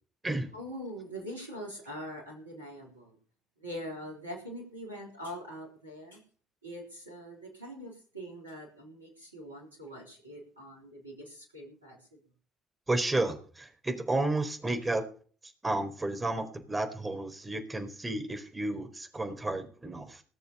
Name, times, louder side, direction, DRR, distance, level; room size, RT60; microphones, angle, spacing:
voice 1, 0.5-3.2 3.6-6.2 6.6-12.2, equal, 85° right, -1 dB, 3.8 m, -43 dB
voice 2, 12.9-15.0 15.6-20.2, right 2 dB, 20° right, 7 dB, 4.2 m, -32 dB
19.5 x 7.0 x 6.9 m, 0.43 s
figure-of-eight pair, 50°, 0 cm